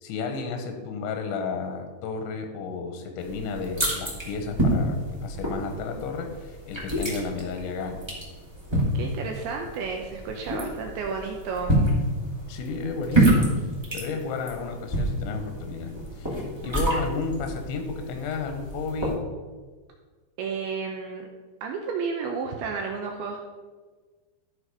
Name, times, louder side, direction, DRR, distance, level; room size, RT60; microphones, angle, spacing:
voice 1, 0.0-8.0 12.5-13.5 13.9-19.2, left 4 dB, 85° left, 5 dB, 3.4 m, -32 dB
sound 1, 3.2-19.1, right 1 dB, 10° right, 1.1 m, -28 dB
voice 2, 8.9-11.8 20.4-21.3 21.6-23.4, right 5 dB, 80° right, 2 dB, 2.3 m, -32 dB
13.0 x 4.9 x 5.3 m, 1.4 s
omnidirectional pair, 5.2 m